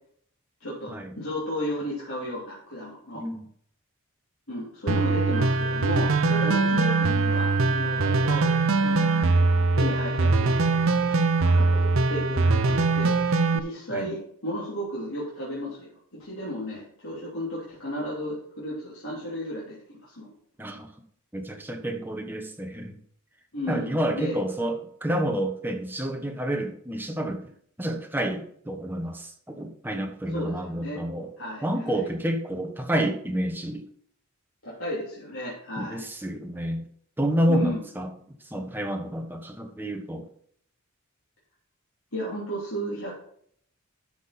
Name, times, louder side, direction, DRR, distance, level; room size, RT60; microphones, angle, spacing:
voice 1, 0.6-3.2 4.5-8.5 8.8-9.5 9.7-10.5 11.4-13.2 13.5-20.3 23.5-24.4 30.3-31.0 31.4-32.1 34.6-36.0 37.5-37.8 42.1-43.1, equal, 65° left, -7 dB, 3.2 m, -34 dB
sound 1, 4.9-13.6, right 3 dB, 65° right, 0.8 m, -22 dB
Wind instrument woodwind instrument, 5.3-9.3, right 7 dB, 35° right, 2.9 m, -34 dB
voice 2, 21.3-23.0 23.7-27.4 27.8-31.3 31.6-33.8 35.8-36.8 37.2-38.1 38.5-40.3, right 1 dB, 10° right, 4 dB, 1.1 m, -29 dB
12.0 x 6.0 x 4.2 m, 0.64 s
head